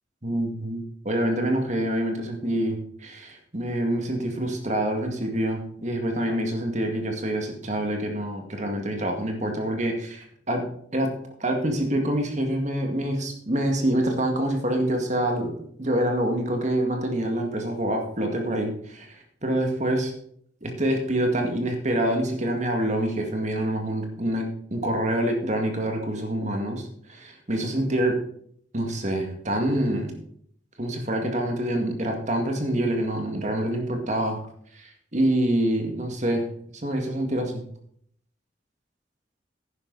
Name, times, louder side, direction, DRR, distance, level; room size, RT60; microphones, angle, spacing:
voice 1, 0.2-0.8 1.0-10.6 10.9-11.1 11.4-20.1 20.6-28.2 28.7-30.2 30.8-34.4 34.7-36.5 36.7-37.6, right 1 dB, 40° right, 3 dB, 2.1 m, -26 dB
11.5 x 10.0 x 4.1 m, 0.64 s
head